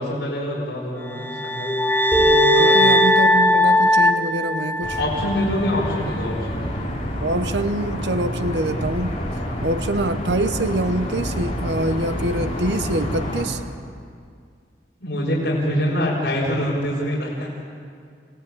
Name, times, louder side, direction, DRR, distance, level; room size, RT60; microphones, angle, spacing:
voice 1, 0.0-1.8 2.5-2.8 5.0-6.9 15.0-17.5, left 1 dB, 65° left, -6 dB, 5.3 m, -25 dB
sound 1, 1.1-5.4, left 1 dB, 10° left, 0.5 m, -18 dB
sound 2, 2.1-5.6, right 1 dB, 10° right, 4.6 m, -24 dB
voice 2, 2.2-5.0 7.2-9.2 9.6-13.6, right 1 dB, 75° right, 10 dB, 0.9 m, -25 dB
sound 3, 4.8-13.4, equal, 35° left, 3.9 m, -28 dB
28.5 x 17.0 x 8.7 m, 2.2 s
head